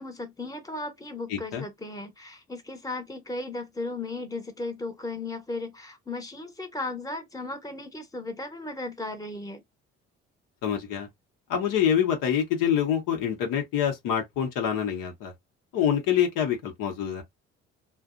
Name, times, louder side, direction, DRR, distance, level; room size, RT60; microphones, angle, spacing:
voice 1, 0.0-9.6, left 2 dB, 10° left, 1.0 m, -36 dB
voice 2, 1.3-1.6 10.6-11.1 11.5-15.3 15.7-17.2, left 9 dB, 70° left, 0.9 m, -26 dB
2.5 x 2.1 x 2.4 m
hypercardioid pair, 50°, 33 cm